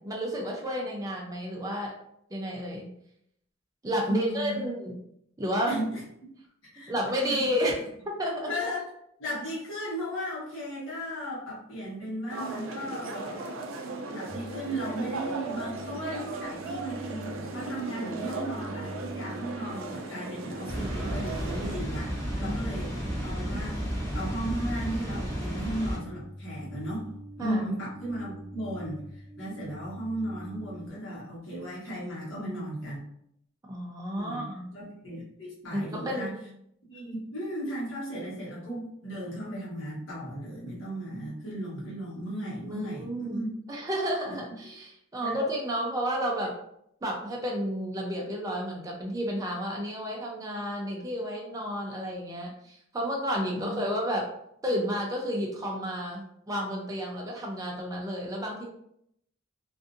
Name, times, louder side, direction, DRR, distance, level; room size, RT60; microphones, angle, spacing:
voice 1, 0.0-1.9 2.3-2.9 3.8-5.0 5.4-5.8 6.9-7.7 8.1-8.5 22.4-22.6 27.4-27.7 33.7-34.7 35.7-36.3 42.6-46.5 47.0-54.2 54.6-58.6, equal, 15° right, -2 dB, 0.4 m, -31 dB
voice 2, 4.0-4.5 5.7-6.3 6.7-6.9 7.3-7.5 8.5-8.8 9.2-13.6 14.1-33.0 34.1-34.5 34.7-36.3 36.9-43.5 44.3-44.4 45.2-45.4 53.5-53.7, equal, 70° left, -6 dB, 1.2 m, -36 dB
sound 1, 12.3-21.8, right 3 dB, 75° right, 0.4 m, -37 dB
sound 2, 14.3-30.9, equal, 45° left, 0.9 m, -46 dB
Water, 20.7-26.0, equal, 15° left, 0.8 m, -32 dB
2.6 x 2.4 x 2.5 m, 0.73 s
head